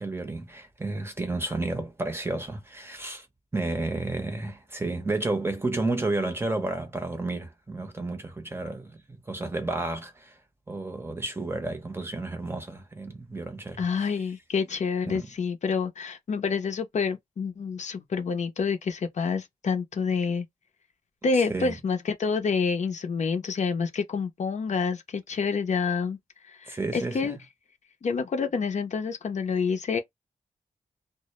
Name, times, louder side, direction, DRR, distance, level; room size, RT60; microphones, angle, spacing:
voice 1, 0.0-3.2 3.5-9.0 9.3-10.3 10.7-13.9 15.1-15.3 21.5-21.7 26.7-27.4, right 2 dB, 15° right, 0.7 m, -31 dB
voice 2, 13.8-20.4 21.2-26.2 26.4-27.4 28.0-30.0, left 5 dB, 60° left, 0.6 m, -28 dB
2.1 x 2.0 x 3.0 m
wide cardioid pair, 90°, 14 cm